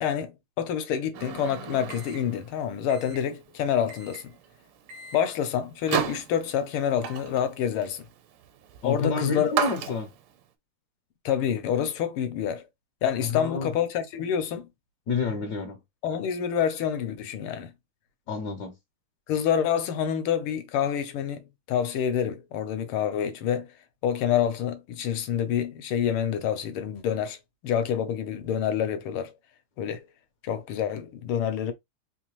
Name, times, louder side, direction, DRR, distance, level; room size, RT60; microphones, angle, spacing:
voice 1, 0.0-4.3 5.1-8.0 8.8-9.5 11.3-12.6 13.0-14.7 16.0-17.7 19.3-23.7 24.0-27.4 27.6-29.3 29.8-30.0 30.4-31.7, left 9 dB, 80° left, 1.6 m, -27 dB
Microwave oven, 1.1-10.4, right 9 dB, 85° right, 1.6 m, -35 dB
voice 2, 8.8-10.1 13.2-13.8 15.1-15.8 18.3-18.7, left 4 dB, 65° left, 1.1 m, -29 dB
3.7 x 2.6 x 2.9 m
omnidirectional pair, 2.3 m